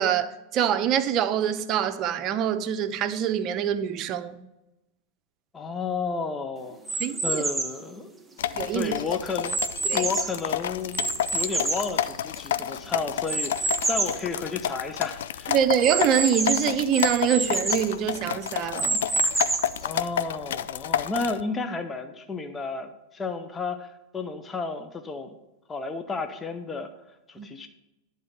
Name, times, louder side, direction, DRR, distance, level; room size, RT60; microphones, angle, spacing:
voice 1, 0.0-4.4 7.0-7.2 8.5-8.9 9.9-10.0 15.5-19.0 27.4-27.5, right 9 dB, 40° right, 0.7 m, -25 dB
voice 2, 5.5-8.1 8.7-9.6 9.9-11.1 11.3-15.6 19.8-25.4 25.7-26.9 27.3-27.7, left 4 dB, 20° left, 0.8 m, -32 dB
sound 1, 6.9-7.8 8.4-10.5 10.9-12.6 13.3-14.2 14.7-14.8 15.0-15.1 15.8-17.9 18.5-19.8, right 3 dB, 10° right, 0.9 m, -28 dB
sound 2, 8.4-21.4, left 10 dB, 70° left, 0.3 m, -30 dB
11.0 x 4.0 x 6.6 m
figure-of-eight pair, 90°, 0 cm